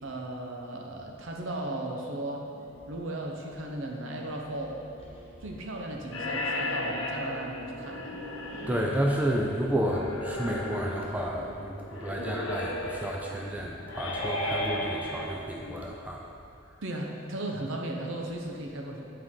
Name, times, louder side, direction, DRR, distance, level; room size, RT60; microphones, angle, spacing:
voice 1, 0.0-2.5 2.9-4.8 5.4-8.1 12.2-12.3 16.8-19.0, right 1 dB, 70° right, 1 dB, 0.8 m, -36 dB
sound 1, 2.5-11.2, left 2 dB, 25° left, 0.9 m, -53 dB
sound 2, 6.1-15.9, left 1 dB, 70° left, 0.9 m, -35 dB
voice 2, 8.7-16.3, equal, 5° right, -1 dB, 0.3 m, -31 dB
8.5 x 4.6 x 3.7 m, 2.6 s
head